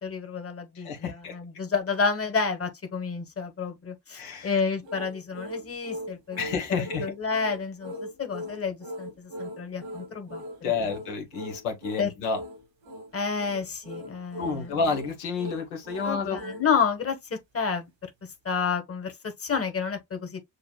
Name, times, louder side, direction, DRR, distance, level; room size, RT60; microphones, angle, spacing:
voice 1, 0.0-6.4 6.8-10.7 12.0-12.1 13.1-14.8 16.0-17.9 18.4-20.5, left 5 dB, 30° left, 1.5 m, -30 dB
voice 2, 0.7-1.4 4.2-4.6 6.4-7.1 10.6-12.4 14.4-16.4, left 5 dB, 85° left, 1.3 m, -30 dB
sound 1, 4.8-16.7, equal, 90° right, 1.5 m, -40 dB
6.6 x 2.6 x 2.3 m
hypercardioid pair, 50°, 44 cm